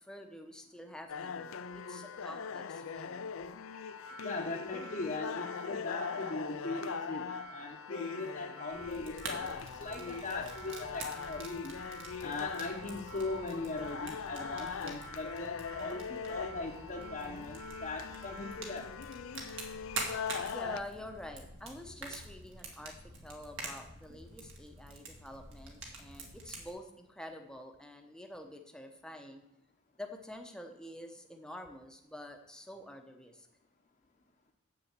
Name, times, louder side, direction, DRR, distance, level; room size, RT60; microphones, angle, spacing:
voice 1, 0.0-3.3 20.5-22.9 23.2-29.4 30.0-33.5, left 1 dB, 5° left, 4 dB, 0.9 m, -47 dB
sound 1, 1.1-20.8, left 6 dB, 70° left, 0.5 m, -41 dB
sound 2, 3.7-18.6, right 3 dB, 80° right, 3.1 m, -52 dB
voice 2, 4.2-11.8 12.2-18.9, left 3 dB, 35° left, -2 dB, 0.9 m, -40 dB
Fire, 8.7-26.7, right 3 dB, 60° right, 2.0 m, -47 dB
7.1 x 7.1 x 8.0 m, 0.83 s
head